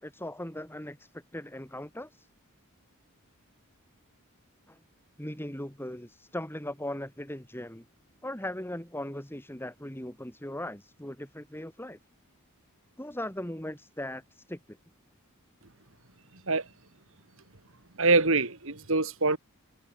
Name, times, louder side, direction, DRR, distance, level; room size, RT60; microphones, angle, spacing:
voice 1, 0.0-2.3 4.7-4.8 5.2-7.8 8.2-12.0 13.0-14.6, left 1 dB, 10° left, 4.4 m, -38 dB
voice 2, 18.0-19.4, right 3 dB, 65° right, 3.2 m, -24 dB
head